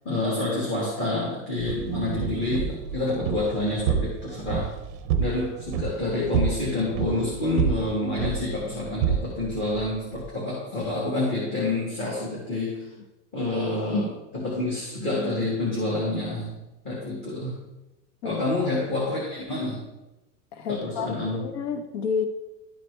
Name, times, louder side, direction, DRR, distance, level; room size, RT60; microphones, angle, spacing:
voice 1, 0.0-4.7 5.2-12.9 13.3-16.6 16.9-17.6 18.2-19.8 20.7-21.5, left 2 dB, 25° left, -5 dB, 1.7 m, -28 dB
sound 1, 1.6-10.3, right 8 dB, 35° right, 0.5 m, -29 dB
voice 2, 20.5-21.1 21.3-22.3, left 6 dB, 85° left, 6 dB, 1.0 m, -29 dB
12.0 x 4.2 x 3.3 m, 1.0 s
supercardioid pair, 165°, 44 cm